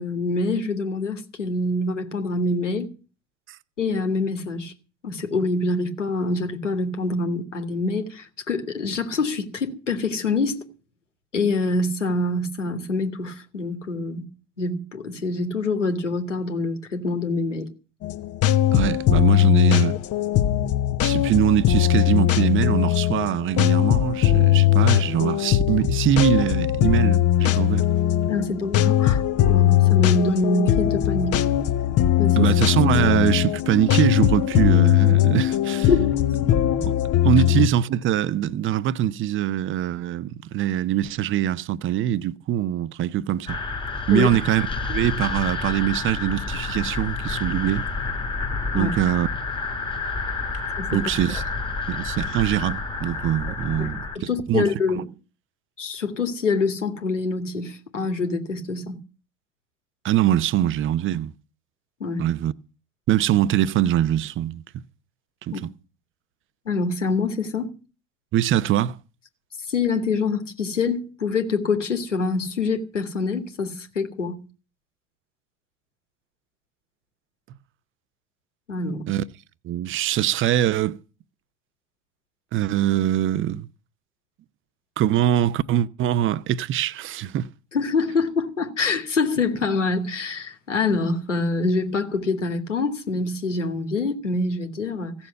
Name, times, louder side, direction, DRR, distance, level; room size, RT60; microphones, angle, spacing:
voice 1, 0.0-2.9 3.8-4.7 5.0-10.6 11.3-14.3 14.6-17.7 28.3-31.4 32.2-32.5 35.9-36.1 44.1-44.3 48.7-48.9 50.8-51.1 53.8-53.9 54.2-55.1 55.8-59.0 62.0-62.2 65.5-65.6 66.7-67.7 69.7-74.4 78.7-79.1 87.7-95.1, left 3 dB, 85° left, 2.1 m, -25 dB
sound 1, 18.0-37.7, left 13 dB, 40° left, 1.2 m, -20 dB
voice 2, 18.7-20.0 21.0-27.9 32.4-35.9 36.5-36.9 37.2-43.6 44.1-47.9 48.7-49.3 50.9-51.4 51.9-55.0 60.0-61.3 62.2-62.5 63.1-64.8 65.4-65.6 68.3-69.0 79.1-79.2 79.6-81.0 82.5-83.7 85.0-87.5, right 12 dB, 35° right, 0.8 m, -23 dB
sound 2, 43.5-54.2, left 4 dB, 15° left, 1.7 m, -29 dB
16.0 x 7.2 x 9.2 m
figure-of-eight pair, 70°, 36 cm